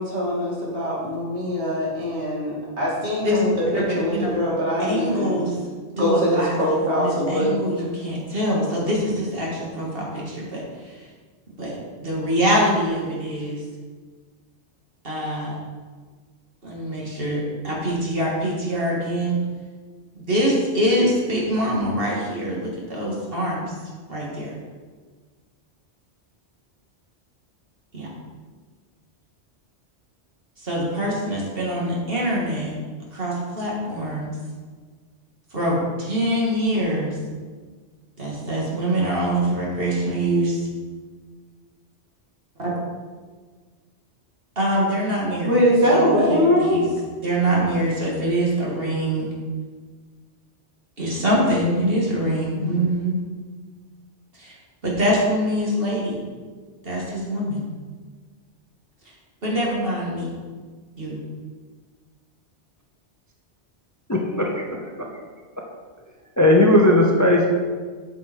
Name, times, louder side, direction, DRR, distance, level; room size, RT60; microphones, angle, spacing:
voice 1, 0.0-5.4 5.9-7.5 45.4-46.9, equal, 70° right, -6 dB, 3.0 m, -22 dB
voice 2, 3.7-4.3 4.8-5.6 6.0-11.0 11.6-13.6 15.0-15.6 16.6-19.4 20.3-23.7 24.1-24.5 27.9-28.1 30.6-32.7 33.1-34.3 35.5-37.2 38.2-40.6 42.6-42.7 44.6-45.6 45.9-46.8 47.2-49.3 51.0-53.2 54.4-54.6 54.8-56.2 56.8-57.7 59.4-60.3 61.0-61.2, equal, 55° right, -4 dB, 2.5 m, -24 dB
voice 3, 64.1-64.6 66.4-67.5, left 1 dB, 15° left, 0 dB, 0.8 m, -16 dB
8.1 x 7.1 x 4.6 m, 1.5 s
omnidirectional pair, 1.2 m